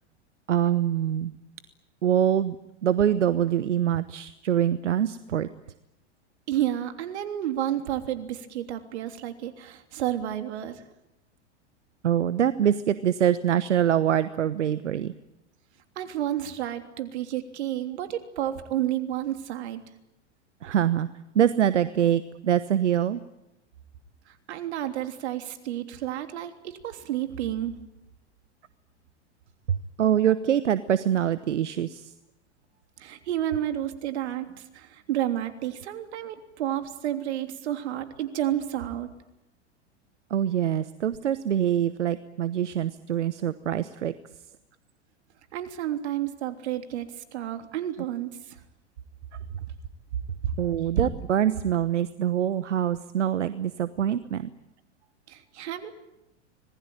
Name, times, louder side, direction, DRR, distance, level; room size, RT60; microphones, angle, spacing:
voice 1, 0.5-1.3 2.0-2.6 2.8-5.5 12.0-15.1 20.6-21.1 21.3-23.2 29.7-32.1 40.3-44.1 50.6-54.5, right 10 dB, 85° right, 14 dB, 1.1 m, -24 dB
voice 2, 6.5-10.7 16.0-19.8 24.5-26.5 26.8-27.7 33.0-34.5 34.7-39.1 45.5-47.1 47.3-48.3 55.3-55.9, right 12 dB, 70° right, 8 dB, 3.2 m, -30 dB
26.0 x 20.5 x 9.1 m, 0.90 s
hypercardioid pair, 105°, 35 cm